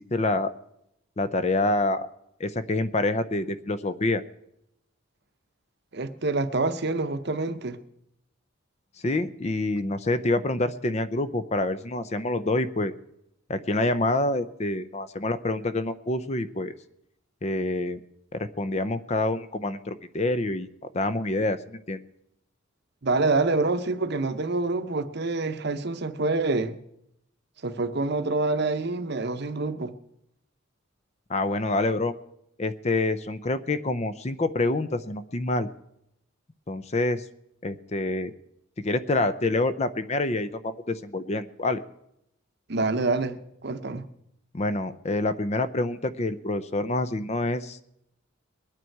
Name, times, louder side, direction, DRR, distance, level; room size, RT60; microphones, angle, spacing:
voice 1, 0.1-0.5 1.2-2.1 2.4-4.2 9.0-12.9 13.5-16.7 17.4-18.0 18.3-20.7 20.9-22.0 31.3-32.1 32.6-35.7 36.7-37.2 37.6-38.3 38.8-41.8 44.5-47.9, left 2 dB, 30° left, 12 dB, 0.6 m, -27 dB
voice 2, 5.9-7.8 23.0-26.8 27.6-29.9 42.7-44.1, right 3 dB, 50° right, 10 dB, 0.8 m, -26 dB
22.0 x 9.1 x 4.6 m, 0.79 s
head